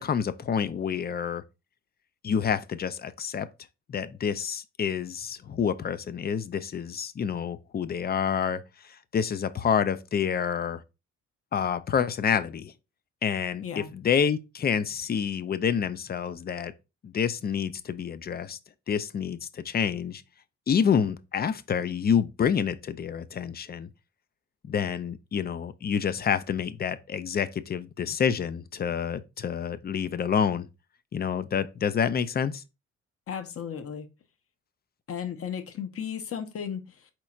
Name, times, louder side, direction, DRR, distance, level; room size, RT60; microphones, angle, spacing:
voice 1, 0.0-1.4 2.2-3.5 3.9-8.6 9.1-10.8 11.5-12.7 13.2-16.7 17.0-18.6 18.9-20.2 20.7-23.9 24.6-30.7 31.1-32.6, left 7 dB, 30° left, 0.5 m, -28 dB
voice 2, 13.6-13.9 33.3-34.1 35.1-37.1, left 8 dB, 50° left, 0.9 m, -35 dB
4.4 x 4.1 x 2.4 m
cardioid pair, 90°, 30 cm